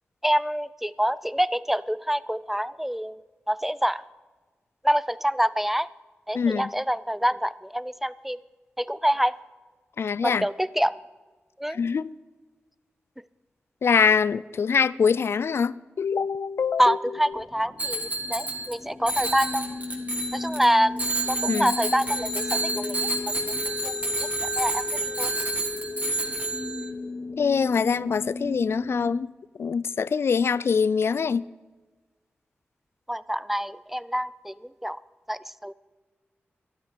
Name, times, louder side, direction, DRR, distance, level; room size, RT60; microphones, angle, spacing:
voice 1, 0.2-3.2 3.5-4.0 4.8-5.9 6.3-8.4 8.8-9.3 10.2-10.9 11.6-11.8 16.8-19.8 20.3-23.1 23.8-25.3 33.1-34.5 34.8-35.0 35.3-35.7, equal, 5° right, 0.5 m, -26 dB
voice 2, 6.3-6.7 10.0-10.5 11.7-12.1 13.8-17.0 21.5-21.7 27.4-29.3 29.6-31.4, left 6 dB, 70° left, 0.3 m, -24 dB
sound 1, 17.4-29.1, left 3 dB, 40° left, 1.0 m, -35 dB
Bicycle bell, 17.8-18.7 19.1-20.7 21.0-26.9, right 1 dB, 35° right, 3.1 m, -29 dB
12.5 x 11.0 x 6.6 m
cardioid pair, 60°, 4 cm